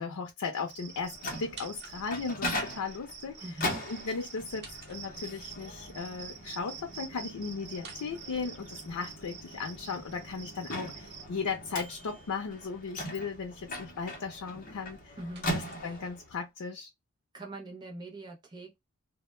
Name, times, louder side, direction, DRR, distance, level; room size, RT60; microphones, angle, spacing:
voice 1, 0.0-3.4 3.9-15.2 15.5-16.9, left 5 dB, 90° left, 0.5 m, -37 dB
Cricket, 0.6-11.2, right 7 dB, 80° right, 0.7 m, -48 dB
Microwave oven, 0.8-16.3, left 1 dB, 40° left, 0.6 m, -40 dB
sound 1, 1.4-2.4 4.4-5.6 7.7-9.0 11.7-12.0 14.7-16.3, right 4 dB, 50° right, 0.8 m, -52 dB
voice 2, 3.4-3.8 15.2-15.5 15.8-16.0 17.3-18.8, right 2 dB, 20° right, 0.4 m, -42 dB
2.1 x 2.1 x 3.0 m
head